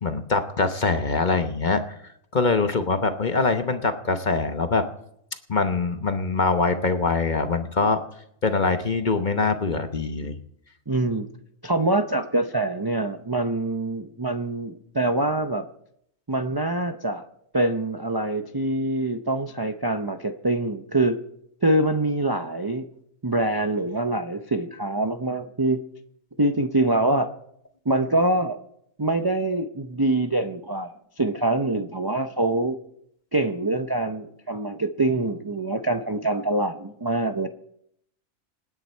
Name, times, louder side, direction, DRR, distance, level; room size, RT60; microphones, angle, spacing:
voice 1, 0.0-2.0 2.3-4.8 5.5-8.0 8.4-10.4, left 4 dB, 40° left, 8 dB, 1.0 m, -23 dB
voice 2, 10.9-11.3 11.6-15.7 16.3-17.2 17.5-21.2 21.6-22.9 23.2-25.8 26.4-27.3 27.9-28.6 29.0-32.8 33.3-37.5, right 2 dB, 25° right, 6 dB, 0.5 m, -24 dB
27.0 x 9.9 x 4.4 m, 0.73 s
omnidirectional pair, 1.4 m